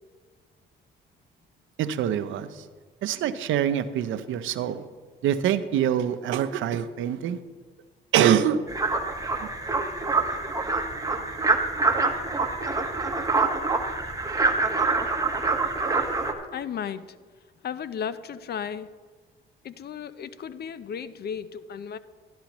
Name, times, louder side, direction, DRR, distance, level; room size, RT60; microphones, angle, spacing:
voice 1, 1.8-2.7 3.0-4.9 5.2-7.4 8.1-8.6 9.4-9.5, right 10 dB, 80° right, 12 dB, 0.6 m, -25 dB
sound 1, 8.7-16.3, right 3 dB, 15° right, 1.1 m, -25 dB
voice 2, 16.5-17.2 17.6-18.9 19.6-22.0, left 7 dB, 55° left, 15 dB, 0.5 m, -34 dB
13.0 x 11.0 x 3.0 m, 1.5 s
cardioid pair, 90°, 20 cm